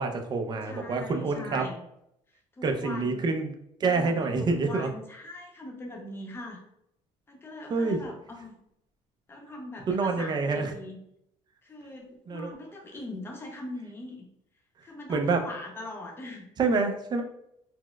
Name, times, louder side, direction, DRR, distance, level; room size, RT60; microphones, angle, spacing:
voice 1, 0.0-1.7 2.6-3.5 3.8-4.9 7.7-8.0 9.9-10.7 12.3-12.5 15.1-15.4 16.6-17.2, right 4 dB, 35° right, 5 dB, 0.5 m, -27 dB
voice 2, 0.6-1.8 2.5-3.3 3.9-6.6 7.3-8.6 9.3-11.0 11.6-14.3 14.8-16.5, left 2 dB, 20° left, 0 dB, 0.7 m, -41 dB
4.2 x 2.0 x 2.2 m, 0.78 s
cardioid pair, 125°, 13 cm